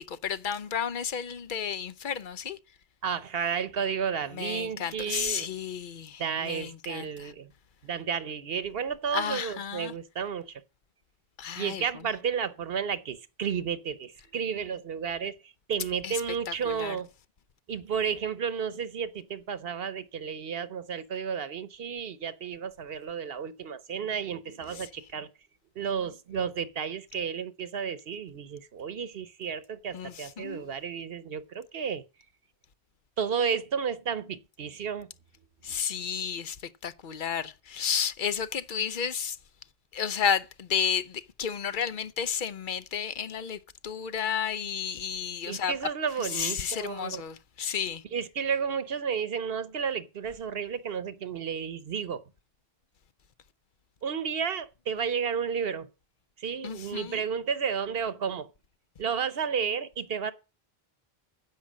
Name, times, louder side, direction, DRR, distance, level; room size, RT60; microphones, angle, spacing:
voice 1, 0.0-2.6 4.3-7.3 9.1-9.9 11.4-12.0 16.0-16.2 16.5-17.0 24.7-24.9 29.9-30.7 35.6-39.4 39.9-45.8 46.2-48.0 56.6-57.2, left 7 dB, 55° left, 0.9 m, -32 dB
voice 2, 3.0-5.5 6.2-7.5 7.8-10.6 11.6-17.1 17.7-25.3 25.8-32.0 33.2-35.1 35.7-35.8 45.5-47.2 48.1-52.2 54.0-55.9 56.4-58.5 59.0-60.3, right 7 dB, 70° right, 1.0 m, -32 dB
10.5 x 7.5 x 7.3 m
omnidirectional pair, 1.0 m